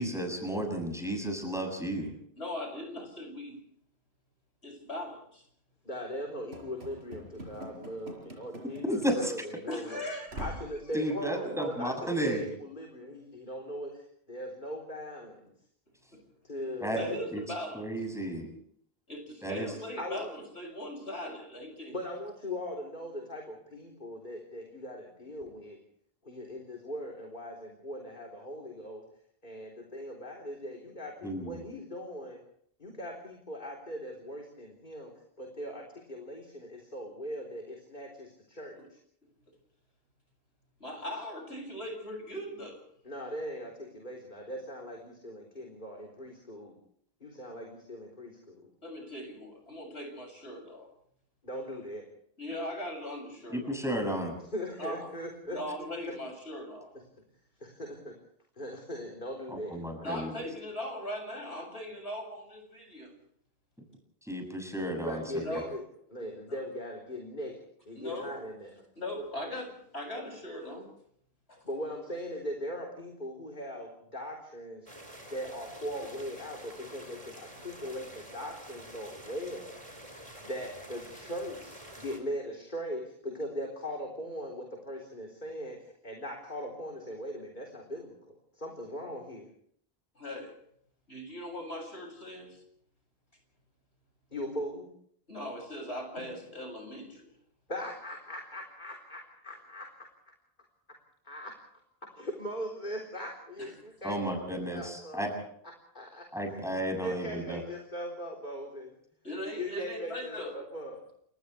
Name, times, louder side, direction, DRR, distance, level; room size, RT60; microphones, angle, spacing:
voice 1, 0.0-2.1 8.8-9.3 10.9-12.4 16.8-17.0 17.3-17.4 17.7-18.5 19.4-19.7 31.2-31.6 53.5-54.4 59.5-60.3 64.2-65.4 104.0-105.3 106.3-107.6, right 1 dB, 5° right, 3 dB, 7.1 m, -33 dB
voice 2, 2.4-3.5 4.6-5.4 9.7-10.5 11.4-11.5 12.0-12.1 17.0-17.8 19.1-22.0 38.8-38.9 40.8-42.8 48.8-50.9 52.4-53.7 54.8-55.1 55.5-56.9 60.0-63.1 65.4-65.7 66.5-66.6 67.9-68.3 69.0-70.9 71.5-71.6 90.2-90.5 91.1-92.6 95.3-97.3 103.6-103.7 109.2-110.5, left 1 dB, 85° left, 3 dB, 7.7 m, -39 dB
voice 3, 5.8-10.1 10.4-15.5 16.4-17.2 20.0-20.3 21.9-25.8 26.2-29.0 29.4-32.4 32.8-39.0 43.0-46.8 47.2-48.7 51.4-52.1 54.5-55.6 57.6-58.2 58.6-60.1 64.8-65.8 66.1-67.6 67.9-68.8 71.6-74.9 75.3-79.8 80.4-89.5 94.3-94.9 97.7-100.3 101.2-101.5 102.1-105.3 105.9-106.3 107.0-108.9 109.6-111.0, equal, 50° left, 0 dB, 4.0 m, -40 dB
Run / Slam, 6.5-9.4 9.7-9.8 10.3-10.8, equal, 85° right, 5.5 m, -44 dB
sound 1, 74.9-82.2, right 1 dB, 35° right, 4.8 m, -48 dB
29.5 x 27.0 x 3.4 m, 0.67 s
omnidirectional pair, 1.1 m